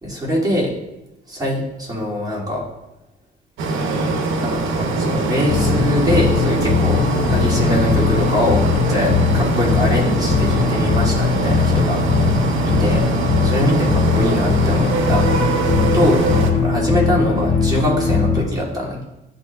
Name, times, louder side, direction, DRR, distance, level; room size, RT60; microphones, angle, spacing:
voice 1, 0.0-0.7 1.3-2.6 4.4-12.2 12.6-13.1 13.4-16.2 16.6-19.0, equal, 20° right, -5 dB, 2.2 m, -23 dB
sound 1, 3.6-16.5, right 2 dB, 85° right, 0.8 m, -22 dB
sound 2, 5.5-18.4, left 5 dB, 25° left, 1.6 m, -20 dB
10.5 x 4.2 x 2.2 m, 0.94 s
cardioid pair, 90°, 20 cm